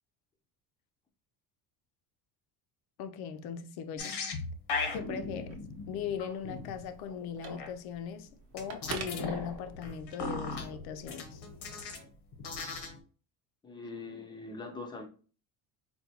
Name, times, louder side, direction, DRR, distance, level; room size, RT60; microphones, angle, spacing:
voice 1, 3.0-4.1 4.9-5.6 5.9-8.3 8.5-11.4, left 7 dB, 65° left, 0.5 m, -39 dB
sound 1, 4.0-7.7 8.6-12.1 12.3-13.0, left 4 dB, 85° left, 1.0 m, -38 dB
Telephone, 5.3-10.1, right 5 dB, 40° right, 0.5 m, -46 dB
voice 2, 13.6-15.1, left 3 dB, 10° left, 0.4 m, -42 dB
4.3 x 2.2 x 2.7 m
cardioid pair, 165°, 40 cm